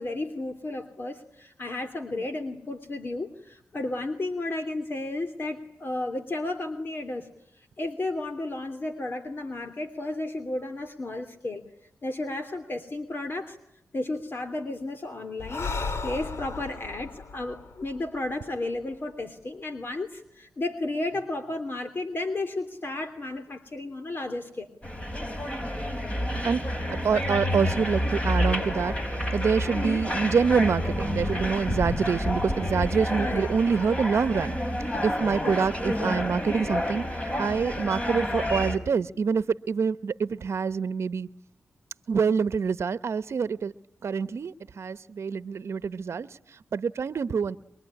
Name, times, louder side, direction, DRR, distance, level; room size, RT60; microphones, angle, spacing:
voice 1, 0.0-7.3 7.8-11.6 12.0-13.6 13.9-15.7 16.0-24.7 29.7-30.0 33.2-33.5 35.4-35.6, left 2 dB, 50° left, 7 dB, 3.1 m, -33 dB
Breathing, 15.4-18.9, left 4 dB, 70° left, 2.7 m, -35 dB
sound 1, 24.8-38.8, equal, 25° left, 5.5 m, -29 dB
voice 2, 26.4-34.6 35.0-41.3 42.1-43.7 44.0-47.6, right 6 dB, 70° right, 14 dB, 1.0 m, -26 dB
24.0 x 23.0 x 9.9 m, 0.78 s
cardioid pair, 50°, 5 cm